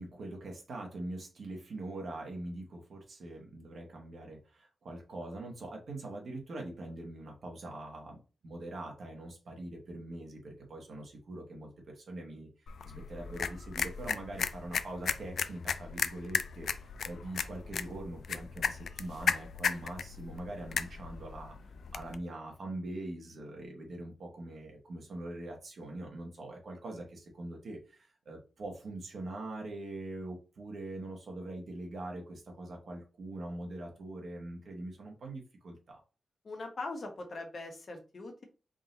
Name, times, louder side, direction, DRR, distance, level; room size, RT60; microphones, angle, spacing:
voice 1, 0.0-12.5 12.8-36.0, right 2 dB, 65° right, 0 dB, 1.2 m, -43 dB
sound 1, 12.7-22.2, left 6 dB, 80° left, 0.4 m, -36 dB
voice 2, 36.4-38.4, left 2 dB, 50° left, 2 dB, 1.3 m, -41 dB
3.8 x 2.7 x 4.0 m, 0.33 s
wide cardioid pair, 115°, 0 cm